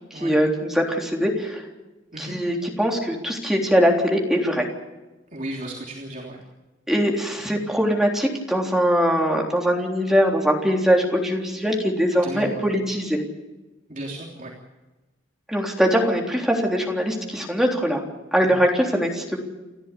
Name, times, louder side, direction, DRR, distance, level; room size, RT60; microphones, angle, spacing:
voice 1, 0.1-1.6 2.2-4.7 6.9-13.2 15.5-18.0 18.3-19.4, equal, ahead, 0 dB, 3.5 m, -22 dB
voice 2, 5.3-6.4 12.1-12.7 13.9-14.5 18.4-18.6, right 1 dB, 40° right, -2 dB, 3.4 m, -34 dB
30.0 x 13.0 x 8.4 m, 1.1 s
head